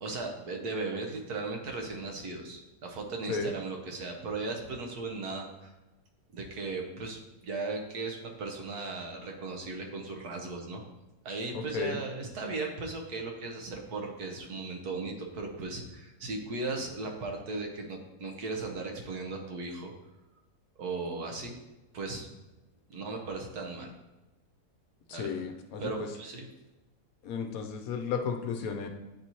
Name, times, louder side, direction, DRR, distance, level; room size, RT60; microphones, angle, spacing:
voice 1, 0.0-5.7 6.3-10.8 11.2-19.9 20.8-21.5 21.9-22.3 22.9-23.9 25.1-25.3 25.8-26.5, right 3 dB, 75° right, 2 dB, 1.5 m, -37 dB
voice 2, 11.5-12.0 25.1-26.1 27.2-28.9, left 5 dB, 70° left, 5 dB, 1.0 m, -34 dB
9.4 x 4.1 x 3.0 m, 1.0 s
omnidirectional pair, 1.7 m